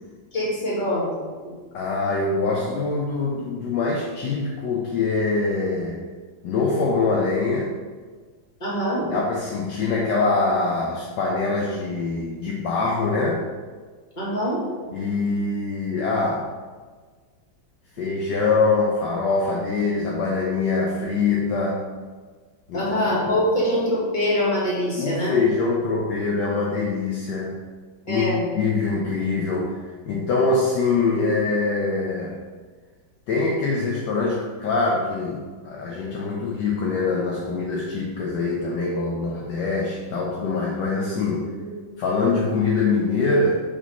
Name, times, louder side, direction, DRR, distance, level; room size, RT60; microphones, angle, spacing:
voice 1, 0.3-1.1 1.4-1.5 8.6-9.2 14.2-14.7 22.7-25.4 28.1-28.4 41.6-41.7, equal, 25° left, -7 dB, 2.1 m, -24 dB
voice 2, 1.7-6.0 6.4-7.7 9.1-13.4 14.9-16.5 18.0-21.9 22.7-22.9 23.2-23.4 25.0-27.6 28.1-32.3 33.3-41.5 42.0-43.6, left 3 dB, 70° left, -2 dB, 1.3 m, -24 dB
5.5 x 5.0 x 4.2 m, 1.5 s
omnidirectional pair, 2.1 m